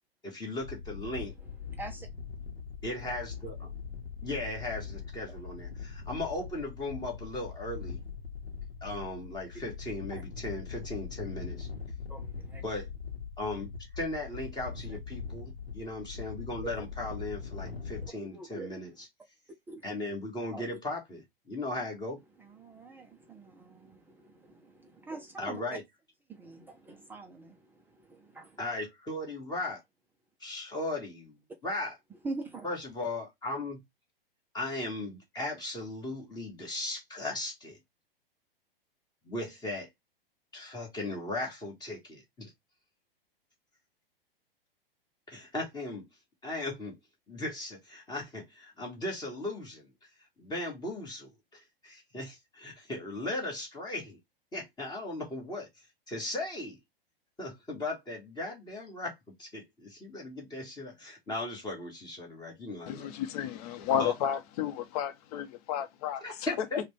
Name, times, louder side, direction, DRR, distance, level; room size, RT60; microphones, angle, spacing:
voice 1, 0.2-1.3 2.8-3.7 4.2-8.0 8.8-11.7 12.6-12.9 13.4-18.9 19.8-22.2 25.4-25.8 28.6-29.8 30.4-31.9 32.6-33.8 34.5-37.8 39.2-39.9 40.5-42.5 45.3-46.1 46.4-47.0 47.3-49.9 50.4-54.2 54.5-55.7 56.1-56.8 57.4-63.1 64.0-64.1 66.2-66.8, left 2 dB, 15° left, 1.5 m, -37 dB
sound 1, 0.6-18.1, left 6 dB, 90° left, 0.8 m, -41 dB
voice 2, 1.7-2.1 10.1-10.2 12.1-12.6 14.9-15.0 16.6-16.7 18.2-18.8 19.7-19.8 20.5-20.8 22.4-25.8 26.3-28.6 32.2-32.7, right 3 dB, 5° right, 0.3 m, -44 dB
voice 3, 62.9-66.2, left 9 dB, 40° left, 0.8 m, -32 dB
4.8 x 2.2 x 3.2 m
figure-of-eight pair, 105°, 29 cm